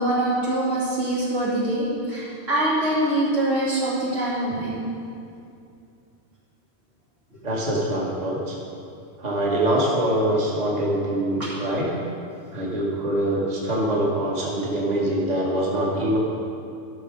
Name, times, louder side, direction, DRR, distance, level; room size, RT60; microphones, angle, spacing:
voice 1, 0.0-4.8 11.4-11.5, right 1 dB, 85° right, -9 dB, 3.2 m, -24 dB
voice 2, 7.4-8.5 9.2-11.9 12.5-16.2, right 1 dB, 35° right, -3 dB, 1.4 m, -24 dB
12.5 x 5.9 x 5.0 m, 2.5 s
omnidirectional pair, 1.3 m